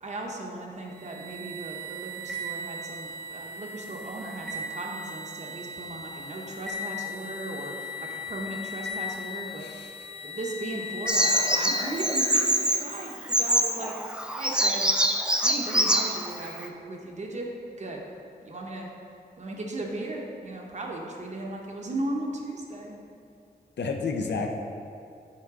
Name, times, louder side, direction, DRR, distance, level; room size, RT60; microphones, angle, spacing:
voice 1, 0.0-9.7 10.2-14.0 14.4-14.9 15.4-18.0 18.4-18.9 19.4-23.0, right 2 dB, 40° right, -1 dB, 0.7 m, -36 dB
sound 1, 0.9-13.0, left 3 dB, 90° right, 1.5 m, -37 dB
voice 2, 9.6-9.9 23.8-24.6, left 4 dB, 85° left, 3 dB, 0.6 m, -30 dB
Bird vocalization bird call bird song, 11.1-16.7, right 1 dB, 5° right, 0.3 m, -25 dB
9.5 x 3.7 x 3.6 m, 2.4 s
wide cardioid pair, 145°, 17 cm